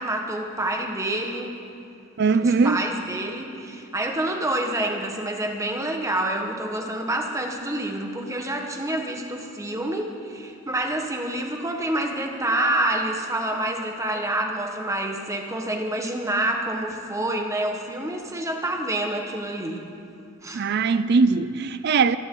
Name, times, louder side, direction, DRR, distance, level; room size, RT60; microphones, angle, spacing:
voice 1, 0.0-1.5 2.4-19.8 20.4-20.7, right 1 dB, 15° right, 1.3 m, -27 dB
voice 2, 2.2-2.8 20.5-22.2, right 4 dB, 55° right, 0.4 m, -20 dB
27.0 x 11.5 x 3.8 m
head